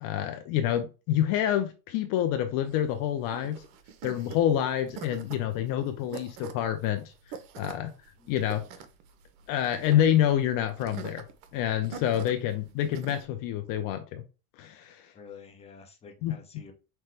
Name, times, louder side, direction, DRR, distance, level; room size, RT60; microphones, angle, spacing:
voice 1, 0.0-3.6 4.0-7.1 7.6-7.9 8.3-8.7 9.5-11.2 11.5-14.2 14.6-15.1 16.2-16.3, left 11 dB, 50° left, 8 dB, 0.5 m, -27 dB
sound 1, 2.7-13.3, right 6 dB, 65° right, 0.8 m, -45 dB
voice 2, 15.1-16.7, left 5 dB, 15° left, 3 dB, 0.7 m, -49 dB
5.8 x 2.2 x 3.3 m, 0.32 s
supercardioid pair, 135°, 43 cm